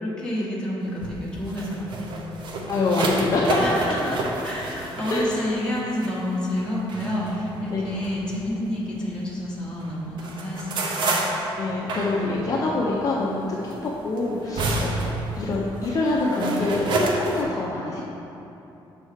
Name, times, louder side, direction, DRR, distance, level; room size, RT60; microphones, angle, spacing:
voice 1, 0.0-2.4 3.6-11.1, left 1 dB, 10° left, -7 dB, 1.3 m, -29 dB
sound 1, 0.9-9.4 9.8-17.4, right 2 dB, 55° right, 0.7 m, -30 dB
voice 2, 2.7-3.6 5.1-5.3 7.7-7.8 11.6-13.7 14.0-15.1 15.4-18.0, left 3 dB, 35° left, -4 dB, 0.6 m, -25 dB
6.3 x 4.3 x 5.0 m, 2.9 s
cardioid pair, 160°, 9 cm